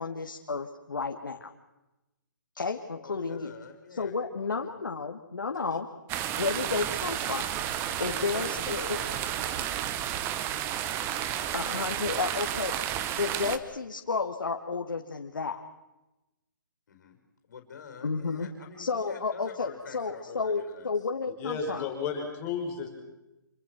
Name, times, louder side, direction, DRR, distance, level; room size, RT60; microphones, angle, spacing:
voice 1, 0.0-1.5 2.5-3.5 3.9-5.9 6.3-9.0 11.5-12.8 13.2-15.6 18.0-18.5 18.8-21.9, left 4 dB, 80° left, 2 dB, 2.4 m, -32 dB
voice 2, 3.0-4.8 5.7-5.8 7.9-12.0 16.9-17.2 17.5-21.1, left 6 dB, 60° left, 4 dB, 4.9 m, -47 dB
sound 1, 6.1-13.6, right 11 dB, 20° right, 1.3 m, -32 dB
voice 3, 21.4-22.9, left 5 dB, 20° left, 0 dB, 6.7 m, -33 dB
27.5 x 25.0 x 6.2 m, 0.99 s
hypercardioid pair, 145°, 11 cm